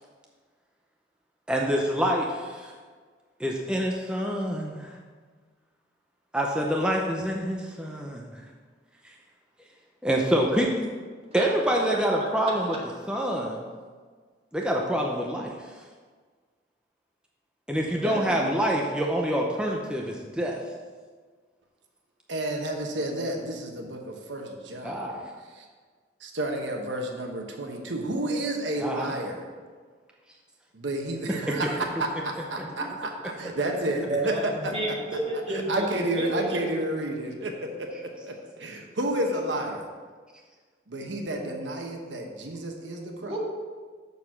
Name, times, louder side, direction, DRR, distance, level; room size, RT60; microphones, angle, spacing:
voice 1, 1.5-2.7 3.4-4.9 6.3-8.3 9.0-9.1 10.0-10.8 11.3-12.8 13.1-13.6 14.5-15.5 17.7-20.6 24.8-25.3 28.8-29.1 32.6-32.9, equal, 5° right, -1 dB, 0.6 m, -26 dB
voice 2, 11.4-11.8 12.5-12.8 17.9-18.6 34.1-36.7 43.2-43.4, right 1 dB, 35° right, -3 dB, 1.8 m, -31 dB
voice 3, 22.3-25.1 25.5-25.7 26.2-29.5 30.7-35.0 35.5-39.9 40.9-43.3, right 1 dB, 90° right, 2 dB, 1.1 m, -31 dB
6.8 x 6.5 x 5.7 m, 1.5 s
head